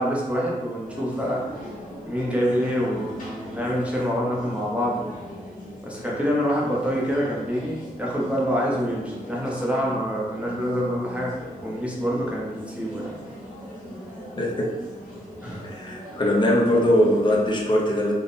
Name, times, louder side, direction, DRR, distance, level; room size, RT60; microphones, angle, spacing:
voice 1, 0.0-1.4 2.0-5.1 5.8-11.3 11.6-13.1 15.4-15.7, equal, 10° right, -4 dB, 0.6 m, -26 dB
sound 1, 0.8-17.6, equal, 65° left, 1.5 m, -40 dB
voice 2, 14.4-14.7 15.6-18.1, equal, 30° left, -4 dB, 0.7 m, -21 dB
3.6 x 2.0 x 3.9 m, 1.2 s
wide cardioid pair, 120°, 15 cm